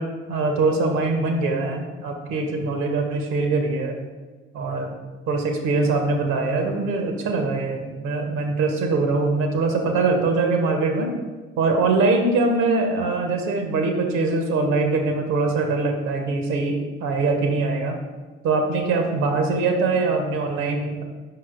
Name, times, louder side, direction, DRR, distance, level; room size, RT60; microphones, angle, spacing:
voice 1, 0.0-3.9 4.5-4.9 5.3-11.1 11.6-18.0 18.4-21.0, right 3 dB, 60° right, 4 dB, 0.9 m, -22 dB
6.6 x 5.6 x 2.5 m, 1.3 s
figure-of-eight pair, 45°, 33 cm